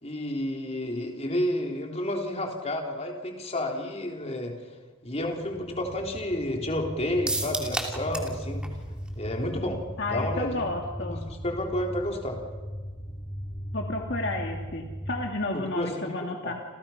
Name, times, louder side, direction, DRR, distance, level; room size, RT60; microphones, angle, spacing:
voice 1, 0.0-4.5 5.0-8.6 9.2-9.8 10.1-10.6 11.0-12.4 15.5-16.2 16.4-16.5, left 1 dB, 30° left, 2 dB, 3.7 m, -31 dB
sound 1, 5.2-15.2, equal, 10° left, 3.4 m, -38 dB
sound 2, 7.3-8.4 8.6-8.7 9.1-9.2, right 1 dB, 5° right, 2.8 m, -30 dB
voice 2, 10.0-11.2 13.7-16.5, left 2 dB, 55° left, 2 dB, 2.2 m, -31 dB
29.0 x 28.5 x 5.9 m, 1.4 s
head